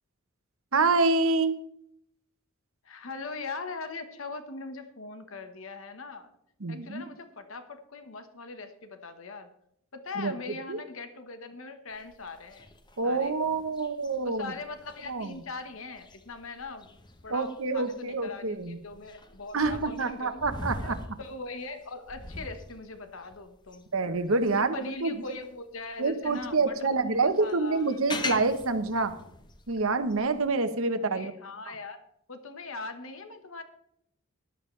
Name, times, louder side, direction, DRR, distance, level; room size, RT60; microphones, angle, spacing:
voice 1, 0.7-1.5 6.6-7.0 10.2-10.3 10.7-10.8 13.0-14.5 15.1-15.4 17.3-18.8 19.5-21.0 23.9-24.7 25.0-25.1 26.0-29.1 29.7-31.3, right 3 dB, 75° right, 10 dB, 1.1 m, -27 dB
voice 2, 2.8-6.3 6.7-9.5 9.9-12.7 13.0-13.4 14.2-20.4 20.8-23.9 24.6-27.8 31.0-32.0 32.3-33.6, left 3 dB, 70° left, 8 dB, 1.4 m, -41 dB
sound 1, 11.9-25.6 26.0-30.5, left 2 dB, 20° left, 1.0 m, -42 dB
13.0 x 12.0 x 3.3 m, 0.73 s
head